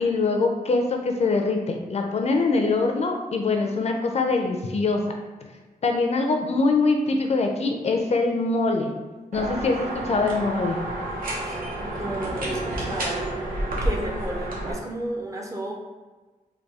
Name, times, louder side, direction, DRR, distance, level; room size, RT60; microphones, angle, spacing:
voice 1, 0.0-5.0 5.8-8.9 9.3-10.8, left 3 dB, 50° left, 3 dB, 0.4 m, -23 dB
sound 1, 9.3-14.7, right 1 dB, 80° right, 0.9 m, -30 dB
voice 2, 11.4-13.4 13.8-15.7, right 1 dB, 20° right, 0 dB, 0.5 m, -33 dB
4.0 x 2.3 x 3.5 m, 1.3 s
wide cardioid pair, 140°, 15 cm